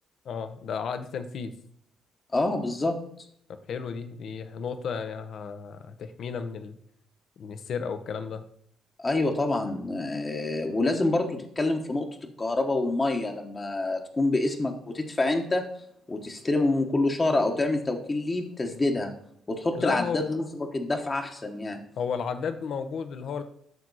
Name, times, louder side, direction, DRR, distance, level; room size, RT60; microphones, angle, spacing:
voice 1, 0.2-1.5 3.5-6.8 7.4-8.4 19.7-20.3 22.0-23.4, left 6 dB, 65° left, 9 dB, 0.9 m, -33 dB
voice 2, 2.3-3.0 9.0-12.1 12.4-15.6 16.1-19.1 19.5-21.8, left 2 dB, 25° left, 3 dB, 1.1 m, -27 dB
9.3 x 6.2 x 4.1 m, 0.69 s
cardioid pair, 90°, 0 cm